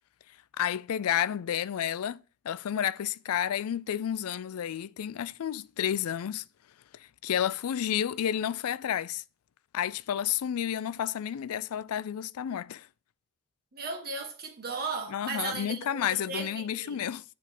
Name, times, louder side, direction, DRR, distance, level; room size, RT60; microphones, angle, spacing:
voice 1, 0.6-6.4 7.0-9.2 9.7-12.9 15.1-17.2, left 9 dB, 75° left, 0.4 m, -31 dB
voice 2, 13.7-16.9, right 4 dB, 45° right, 1.6 m, -36 dB
8.2 x 3.6 x 6.1 m
head